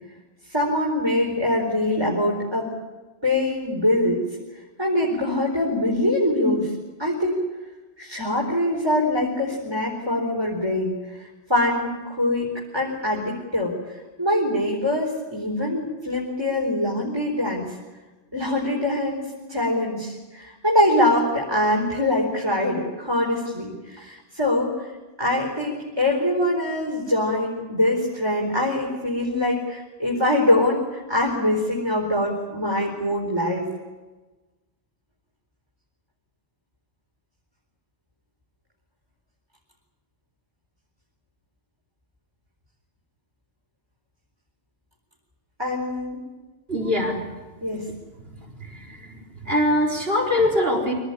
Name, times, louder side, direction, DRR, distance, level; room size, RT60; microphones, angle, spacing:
voice 1, 0.5-2.7 3.2-4.2 4.8-6.7 7.0-7.4 8.0-11.0 11.5-17.7 18.3-24.9 25.2-33.7 45.6-46.2 47.6-47.8, left 1 dB, 20° right, -2 dB, 4.4 m, -23 dB
voice 2, 46.7-47.3 47.6-47.8 48.3-49.1 49.4-50.9, left 1 dB, 60° right, -1 dB, 4.5 m, -23 dB
26.0 x 18.0 x 9.9 m, 1.2 s
omnidirectional pair, 1.1 m